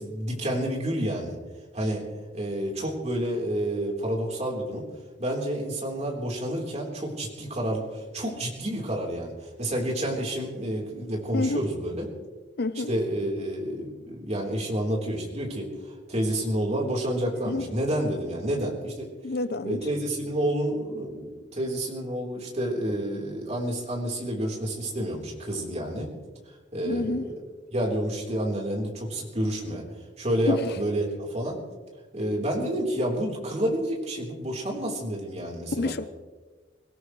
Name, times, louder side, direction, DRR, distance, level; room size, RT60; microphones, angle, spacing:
voice 1, 0.0-1.4 1.7-2.1 2.3-4.9 5.2-12.1 12.9-19.1 19.6-26.1 26.7-27.4 27.7-29.9 30.2-31.6 32.1-35.9, right 1 dB, 40° right, 3.9 m, -29 dB
voice 2, 11.3-11.6 12.6-12.9 17.4-17.7 19.2-19.8 26.8-27.3 30.5-30.7 35.8-36.1, left 2 dB, 60° left, 0.7 m, -28 dB
24.5 x 17.5 x 3.3 m
head